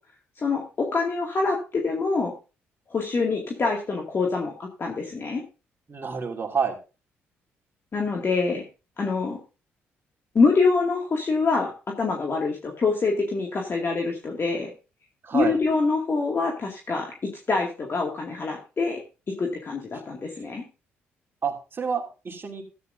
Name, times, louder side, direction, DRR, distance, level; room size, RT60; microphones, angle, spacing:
voice 1, 0.4-2.3 2.9-5.4 7.9-8.6 9.0-9.4 10.3-11.7 12.0-14.7 15.3-17.1 17.5-19.0 19.4-20.6, left 4 dB, 40° left, 0 dB, 2.2 m, -25 dB
voice 2, 5.9-6.7 15.2-15.6 21.4-22.6, right 6 dB, 40° right, 2 dB, 2.7 m, -28 dB
14.0 x 9.2 x 2.7 m, 0.31 s
hypercardioid pair, 50°, 6 cm